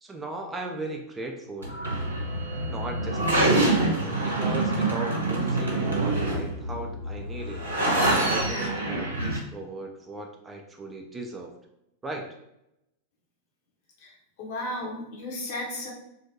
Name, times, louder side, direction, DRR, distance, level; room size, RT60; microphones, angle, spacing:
voice 1, 0.0-1.8 2.7-3.9 4.2-7.7 8.2-11.5 12.0-12.3, right 2 dB, 15° right, 2 dB, 0.3 m, -37 dB
sound 1, 1.6-9.4, right 2 dB, 75° right, 0.6 m, -26 dB
voice 2, 14.0-15.9, left 1 dB, 50° left, -2 dB, 0.8 m, -34 dB
2.7 x 2.1 x 2.7 m, 0.84 s
figure-of-eight pair, 90°, 0 cm